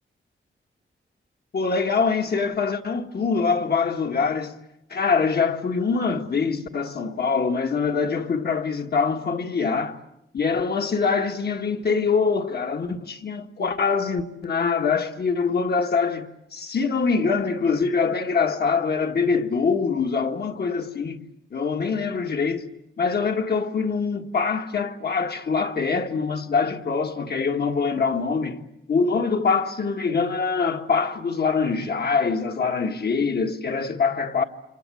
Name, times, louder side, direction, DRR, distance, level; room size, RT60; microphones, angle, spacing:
voice 1, 1.5-4.5 4.9-10.0 10.3-21.2 21.5-22.7 23.0-28.6 28.9-34.4, left 5 dB, 50° left, 1.8 m, -24 dB
29.0 x 26.0 x 7.7 m
wide cardioid pair, 145°, 21 cm